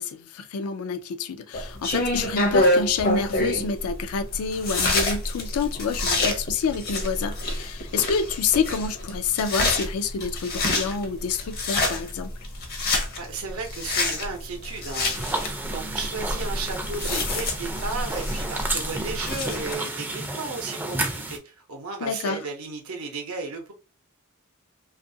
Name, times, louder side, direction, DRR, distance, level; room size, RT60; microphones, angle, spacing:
voice 1, 0.0-12.3 22.0-22.4, left 5 dB, 90° left, 0.4 m, -28 dB
sound 1, 1.5-19.7, left 2 dB, 50° left, 0.6 m, -27 dB
voice 2, 13.2-15.3 15.7-23.7, right 4 dB, 90° right, 0.6 m, -34 dB
sound 2, 15.1-21.4, right 2 dB, 10° right, 0.3 m, -31 dB
2.6 x 2.4 x 2.6 m
head